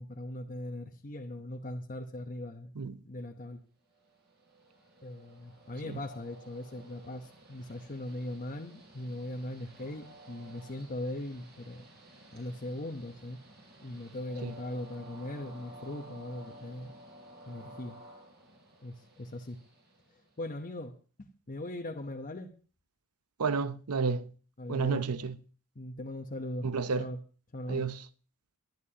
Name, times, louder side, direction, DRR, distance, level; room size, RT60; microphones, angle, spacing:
voice 1, 0.0-2.7 3.0-3.6 5.0-11.9 12.3-13.4 13.8-16.9 17.5-18.0 18.8-19.6 20.4-20.9 21.2-22.5 24.6-25.0 25.7-26.7 27.0-27.2 27.5-27.9, left 1 dB, 35° left, 1.0 m, -39 dB
Train, 3.9-20.6, right 1 dB, 45° right, 5.3 m, -53 dB
voice 2, 23.4-24.3 24.7-25.4 26.6-27.1 27.7-28.0, right 5 dB, 80° right, 0.7 m, -31 dB
22.5 x 10.5 x 2.9 m
head